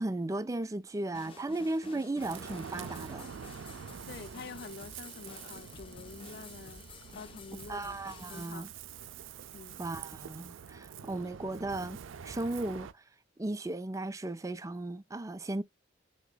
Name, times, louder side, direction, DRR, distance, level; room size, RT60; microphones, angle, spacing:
voice 1, 0.0-3.3 7.7-8.7 9.8-12.0 12.2-13.0 13.4-15.6, right 2 dB, 15° right, 0.4 m, -36 dB
sound 1, 1.1-8.5, left 3 dB, 30° left, 1.0 m, -51 dB
Ocean, 2.2-12.9, right 7 dB, 80° right, 0.4 m, -46 dB
voice 2, 4.1-6.8 7.1-8.7 9.5-9.8, left 5 dB, 55° left, 0.4 m, -47 dB
6.3 x 2.8 x 2.3 m
head